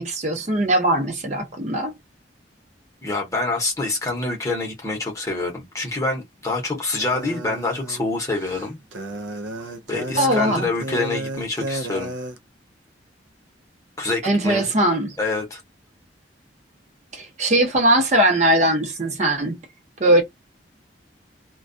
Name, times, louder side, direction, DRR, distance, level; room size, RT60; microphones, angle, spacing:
voice 1, 0.0-1.9 10.2-10.7 14.2-15.2 17.1-19.6 20.0-20.2, right 1 dB, 40° right, 0.6 m, -20 dB
voice 2, 3.0-8.8 9.9-12.1 14.0-14.7 15.2-15.6, left 2 dB, 15° left, 0.8 m, -26 dB
sound 1, 7.0-12.4, right 2 dB, 75° right, 0.4 m, -32 dB
2.2 x 2.2 x 2.5 m
head